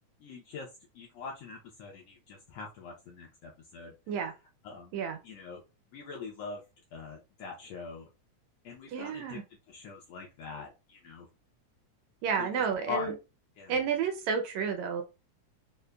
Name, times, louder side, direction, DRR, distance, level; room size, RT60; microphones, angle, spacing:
voice 1, 0.2-0.7 0.9-3.9 4.6-4.9 5.2-5.6 5.9-6.6 6.9-8.1 8.6-9.4 9.7-11.3 12.4-13.1 13.6-13.8, left 5 dB, 75° left, -1 dB, 1.5 m, -42 dB
voice 2, 8.9-9.4 12.2-13.1 13.7-15.0, right 6 dB, 80° right, 6 dB, 1.7 m, -31 dB
5.1 x 2.1 x 2.2 m, 0.28 s
omnidirectional pair, 3.4 m